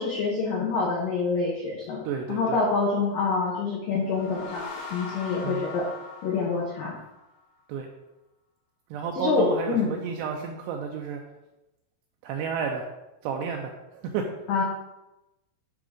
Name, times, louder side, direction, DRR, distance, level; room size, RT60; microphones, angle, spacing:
voice 1, 0.0-2.0 2.3-5.9 6.2-7.0 9.2-9.9 14.5-14.6, left 4 dB, 75° left, -3 dB, 2.0 m, -26 dB
voice 2, 2.0-2.6 5.4-5.6 7.7-7.9 8.9-11.2 12.2-12.9 13.2-14.3, right 6 dB, 90° right, 2 dB, 2.4 m, -31 dB
sound 1, 3.9-7.4, left 3 dB, 50° left, 2.1 m, -40 dB
10.5 x 3.7 x 5.0 m, 0.94 s
omnidirectional pair, 5.7 m